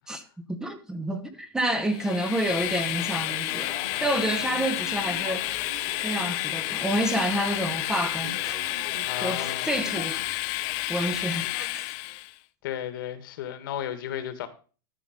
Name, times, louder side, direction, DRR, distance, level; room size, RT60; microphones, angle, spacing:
voice 1, 0.5-3.7 4.0-5.4 6.0-8.8 9.2-10.4 10.9-11.9, right 1 dB, 5° right, 1.0 m, -29 dB
Train, 1.9-12.3, left 19 dB, 45° left, 0.6 m, -30 dB
sound 1, 2.9-10.3, right 3 dB, 85° right, 3.5 m, -44 dB
voice 2, 9.1-9.7 12.6-14.5, left 10 dB, 65° left, 1.8 m, -34 dB
13.0 x 5.1 x 5.1 m
supercardioid pair, 145°, 12 cm